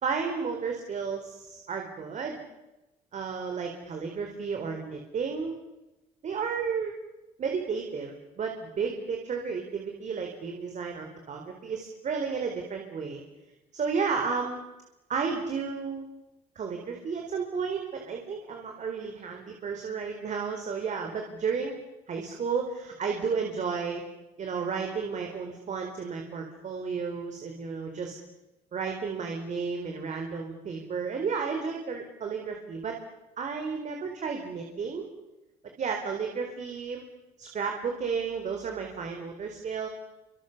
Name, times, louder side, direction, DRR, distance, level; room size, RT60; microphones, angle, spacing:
voice 1, 0.0-2.4 3.1-5.6 6.2-6.9 7.4-13.2 13.7-14.6 15.1-16.1 16.6-21.8 22.1-24.0 24.4-28.1 28.7-33.0 33.4-35.0 35.8-37.1 37.4-39.9, right 5 dB, 45° right, 3 dB, 4.3 m, -32 dB
29.0 x 26.0 x 6.9 m, 1.0 s
cardioid pair, 110°, 17 cm